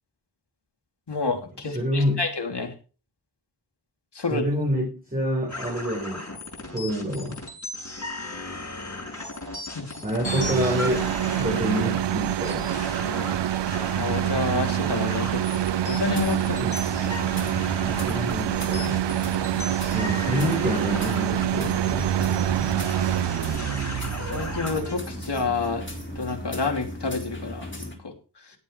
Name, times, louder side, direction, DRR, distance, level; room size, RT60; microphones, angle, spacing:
voice 1, 1.1-2.7 4.2-4.4 9.7-9.9 13.9-16.6 24.3-25.8 26.2-27.7 28.0-28.1, left 3 dB, 75° left, 4 dB, 2.8 m, -28 dB
voice 2, 1.7-2.3 4.3-6.3 6.7-7.4 10.0-12.7 16.6-16.8 17.8-19.0 19.9-22.8, equal, 20° right, -2 dB, 5.3 m, -28 dB
sound 1, 5.5-25.0, left 2 dB, 45° left, 7.9 m, -37 dB
sound 2, 10.2-26.4, right 12 dB, 80° right, 0.5 m, -26 dB
sound 3, 15.9-28.0, left 1 dB, 25° left, 3.9 m, -37 dB
17.0 x 9.0 x 3.3 m, 0.34 s
wide cardioid pair, 60°, 41 cm